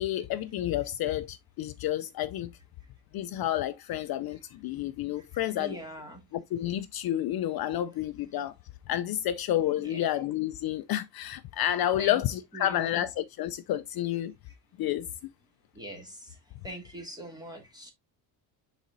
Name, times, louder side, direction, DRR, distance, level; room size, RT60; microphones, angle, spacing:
voice 1, 0.0-2.5 3.1-5.8 6.3-8.5 8.9-14.3 14.8-15.1, left 12 dB, 55° left, 0.5 m, -30 dB
voice 2, 5.6-6.2 9.8-10.0 12.0-12.2 12.5-13.0 15.7-16.4 16.6-17.9, right 1 dB, 10° right, 2.3 m, -42 dB
10.5 x 4.2 x 2.6 m
cardioid pair, 130°, 44 cm